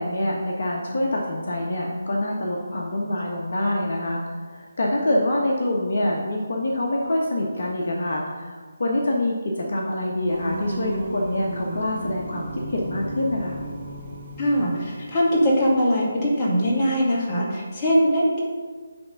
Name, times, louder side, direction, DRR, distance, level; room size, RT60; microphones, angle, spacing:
voice 1, 0.0-4.2 4.5-13.6, left 1 dB, 60° left, -1 dB, 1.1 m, -25 dB
Singing, 10.3-15.7, right 1 dB, 35° right, 1.2 m, -35 dB
voice 2, 14.4-18.4, equal, 25° left, -4 dB, 2.0 m, -21 dB
9.3 x 3.6 x 5.6 m, 1.5 s
figure-of-eight pair, 155°, 0 cm